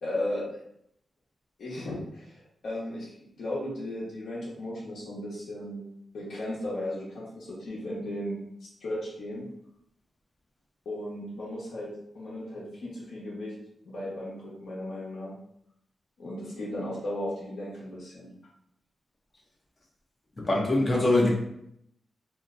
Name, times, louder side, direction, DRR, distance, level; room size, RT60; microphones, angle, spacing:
voice 1, 0.0-0.5 1.6-5.9 6.1-9.5 10.8-13.5 13.8-15.3 16.2-18.3, left 1 dB, 75° left, -7 dB, 1.0 m, -36 dB
voice 2, 20.4-21.3, left 2 dB, 30° left, -2 dB, 0.8 m, -23 dB
2.7 x 2.2 x 3.7 m, 0.74 s
wide cardioid pair, 125°, 0 cm